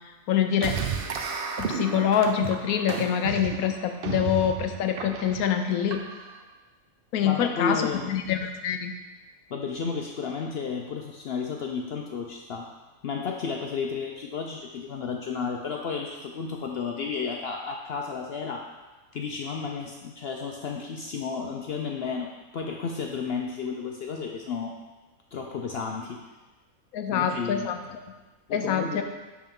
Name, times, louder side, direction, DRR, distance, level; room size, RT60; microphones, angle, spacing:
voice 1, 0.3-0.8 1.6-6.0 7.1-8.9 26.9-27.8 28.5-29.0, left 8 dB, 85° left, 6 dB, 1.1 m, -25 dB
sound 1, 0.6-6.4, right 6 dB, 55° right, 0.6 m, -33 dB
voice 2, 7.2-8.1 9.5-12.7 13.0-18.6 19.1-24.7 25.3-26.2 27.1-27.7 28.5-29.0, left 5 dB, 60° left, 1 dB, 0.6 m, -32 dB
10.5 x 3.8 x 3.6 m, 1.2 s
omnidirectional pair, 1.5 m